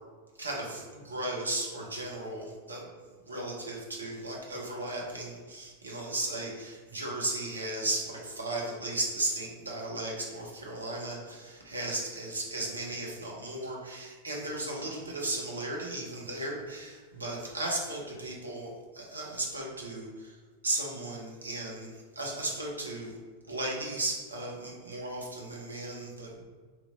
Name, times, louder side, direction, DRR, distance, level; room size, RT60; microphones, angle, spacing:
voice 1, 0.4-2.9 3.3-23.2 23.5-26.4, right 2 dB, 80° right, -2 dB, 0.7 m, -35 dB
2.9 x 2.5 x 4.0 m, 1.5 s
figure-of-eight pair, 90°, 0 cm